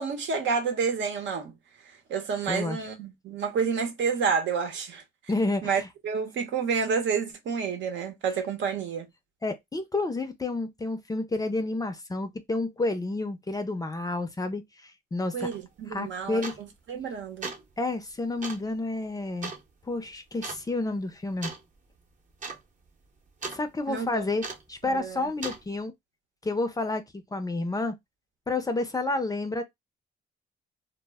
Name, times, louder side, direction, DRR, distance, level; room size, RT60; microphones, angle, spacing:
voice 1, 0.0-1.5 2.1-5.0 5.6-9.1 15.3-17.5 23.9-24.2 24.8-25.3, right 6 dB, 70° right, 0.8 m, -29 dB
voice 2, 2.5-2.9 5.3-5.9 9.4-15.5 15.9-16.6 17.8-19.5 19.9-21.5 23.5-25.9 26.4-27.9 28.5-29.6, left 2 dB, 20° left, 0.5 m, -30 dB
sound 1, 15.5-15.6 16.4-16.8 17.2-17.7 18.4-18.7 19.4-19.6 20.4-20.7 21.4-21.7 22.0-22.1 22.3-22.6 22.9-23.6 24.4-24.8 25.4-25.6, right 4 dB, 40° right, 0.8 m, -37 dB
2.1 x 2.1 x 3.3 m
cardioid pair, 90°, 20 cm